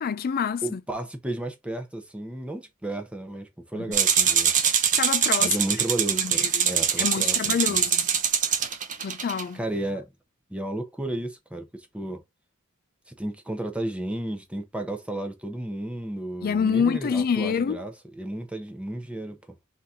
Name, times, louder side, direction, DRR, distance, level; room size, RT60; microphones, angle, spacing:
voice 1, 0.0-0.8 3.7-3.9 5.0-5.6 6.1-6.7 7.0-8.1 9.0-9.6 16.4-17.8, left 6 dB, 45° left, 0.4 m, -27 dB
voice 2, 0.6-4.5 5.4-7.8 9.6-10.1 10.5-12.2 13.2-19.6, right 1 dB, 5° right, 0.8 m, -33 dB
sound 1, 3.9-9.4, right 8 dB, 35° right, 0.7 m, -23 dB
3.9 x 2.8 x 3.6 m
head